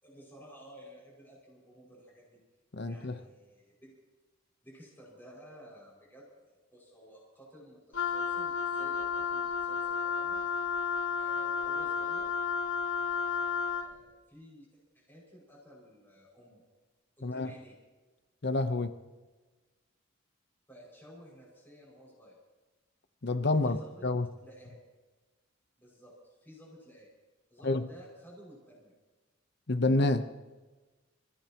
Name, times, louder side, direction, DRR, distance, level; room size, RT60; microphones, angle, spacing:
voice 1, 0.0-2.4 2.8-3.9 4.6-10.4 11.2-12.3 13.1-14.7 14.9-16.6 17.2-17.8 20.7-22.4 23.6-24.1 24.4-24.8 25.8-27.1 27.5-28.9, equal, 10° left, 5.8 m, -54 dB
voice 2, 2.7-3.2 17.2-17.5 18.4-18.9 23.2-24.3 27.6-27.9 29.7-30.3, left 2 dB, 55° left, 0.8 m, -28 dB
Wind instrument woodwind instrument, 7.9-13.9, left 6 dB, 80° left, 1.3 m, -32 dB
29.0 x 15.5 x 3.0 m
head